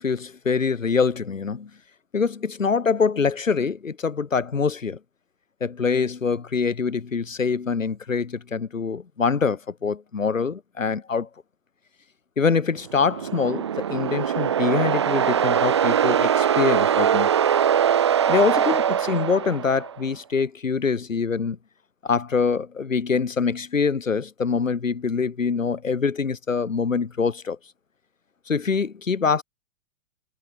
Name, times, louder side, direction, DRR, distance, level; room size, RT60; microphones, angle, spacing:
voice 1, 0.0-1.7 2.1-5.0 5.6-11.3 12.4-17.3 18.3-21.6 22.0-27.6 28.5-29.4, left 5 dB, 80° left, 1.6 m, -24 dB
sound 1, 12.9-20.0, right 9 dB, 25° right, 0.3 m, -22 dB
figure-of-eight pair, 115°, 39 cm